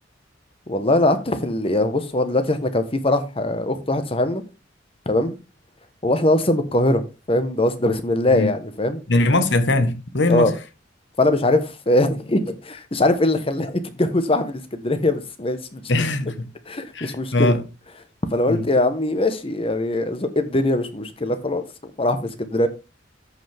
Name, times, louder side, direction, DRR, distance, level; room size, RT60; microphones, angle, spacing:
voice 1, 0.7-4.4 5.1-5.3 6.0-7.0 7.3-9.0 10.3-10.5 11.2-16.0 16.7-17.6 18.3-22.7, left 1 dB, 30° left, 1.2 m, -21 dB
voice 2, 9.1-10.5 15.9-16.5 16.9-17.6 18.5-18.6, left 2 dB, 70° left, 1.3 m, -20 dB
13.5 x 5.6 x 3.5 m
head